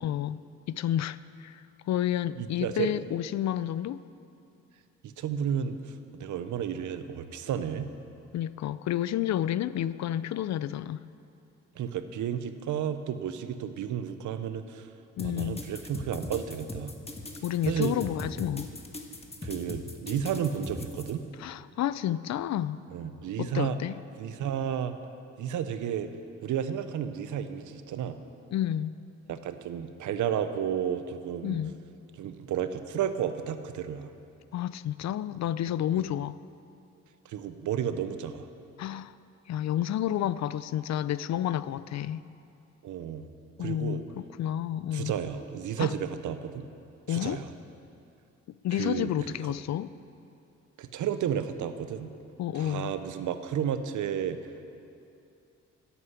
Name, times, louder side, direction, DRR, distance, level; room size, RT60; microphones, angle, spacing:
voice 1, 0.0-0.4 0.7-4.0 8.3-11.0 15.2-15.6 17.4-18.7 21.4-22.8 23.4-23.9 28.5-28.9 31.4-31.8 34.5-36.4 38.8-39.1 39.5-42.2 43.6-45.1 45.8-45.9 47.1-47.4 48.6-49.9 52.4-52.9, left 11 dB, 65° left, 0.5 m, -30 dB
voice 2, 2.4-2.9 5.0-7.9 11.8-14.9 15.2-16.9 17.7-17.9 19.4-21.3 22.9-23.8 24.2-25.0 25.4-26.1 26.4-28.2 29.3-31.6 32.2-34.1 35.9-36.0 37.2-38.5 42.8-43.3 43.6-44.0 44.9-46.7 47.1-47.5 48.7-49.1 50.8-52.1 52.5-54.4, right 9 dB, 80° right, 0.8 m, -32 dB
sound 1, 15.2-21.1, left 2 dB, 20° left, 1.5 m, -39 dB
11.0 x 8.4 x 8.1 m
cardioid pair, 75°, 30 cm